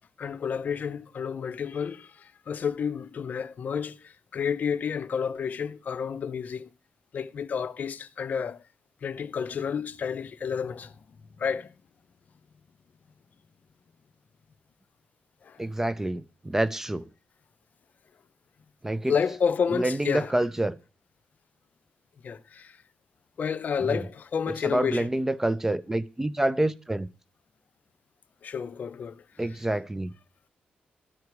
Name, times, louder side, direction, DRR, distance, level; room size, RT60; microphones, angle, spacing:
voice 1, 0.2-6.7 7.1-8.6 9.0-10.9 11.4-11.7 15.4-15.6 19.1-20.3 22.2-22.8 23.4-25.1 28.4-29.2, left 6 dB, 55° left, 0.6 m, -30 dB
voice 2, 15.6-17.1 18.8-19.1 19.7-20.8 23.9-24.0 24.6-27.1 29.4-30.1, right 1 dB, 10° right, 0.4 m, -27 dB
13.0 x 4.7 x 4.8 m
cardioid pair, 105°, 3 cm